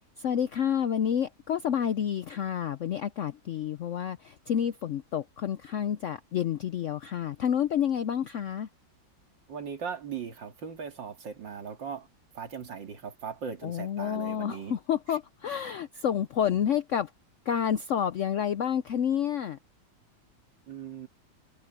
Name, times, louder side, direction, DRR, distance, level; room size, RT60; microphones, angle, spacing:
voice 1, 0.2-8.7 13.6-17.1 17.5-19.6, left 9 dB, 75° left, 0.7 m, -29 dB
voice 2, 9.5-12.1 12.3-14.8 15.1-15.2 20.7-21.1, right 6 dB, 85° right, 2.9 m, -39 dB
omnidirectional pair, 1.9 m